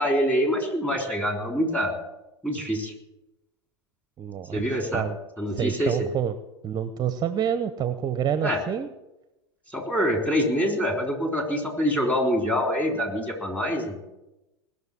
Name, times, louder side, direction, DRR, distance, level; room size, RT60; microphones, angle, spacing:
voice 1, 0.0-1.9 2.4-2.9 4.5-5.0 5.4-6.1 8.4-8.6 9.7-14.1, equal, 10° left, 2 dB, 3.6 m, -25 dB
voice 2, 4.2-4.6 4.9-5.2 5.5-6.3 6.6-8.9, right 9 dB, 25° right, 12 dB, 0.8 m, -27 dB
19.5 x 6.6 x 8.4 m, 0.99 s
hypercardioid pair, 100°, 15 cm